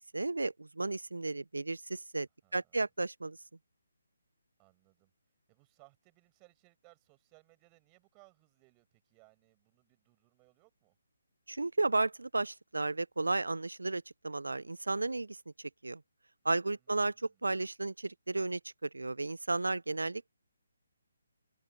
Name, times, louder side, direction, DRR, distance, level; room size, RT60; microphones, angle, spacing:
voice 1, 0.1-3.4 11.5-16.0 16.4-20.3, right 2 dB, 80° right, 0.4 m, -33 dB
voice 2, 2.4-2.8 4.6-5.1 5.5-11.0 16.7-17.5, right 33 dB, 20° right, 6.1 m, -65 dB
figure-of-eight pair, 145°, 0 cm